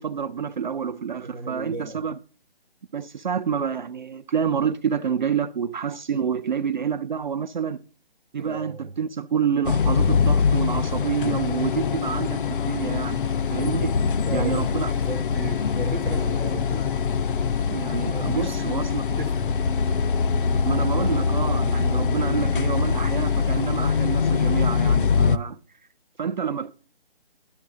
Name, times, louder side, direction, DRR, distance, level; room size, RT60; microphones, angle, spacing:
voice 1, 0.0-2.2 2.9-7.8 8.3-14.0 14.3-14.9 17.7-19.0 20.7-25.6 26.2-26.7, right 7 dB, 50° right, 0.4 m, -28 dB
voice 2, 1.2-2.0 8.4-8.9 14.3-16.9 18.1-19.6, right 2 dB, 5° right, 0.5 m, -35 dB
sound 1, 9.6-25.4, left 6 dB, 60° left, 0.5 m, -23 dB
11.5 x 6.0 x 3.6 m
figure-of-eight pair, 155°, 31 cm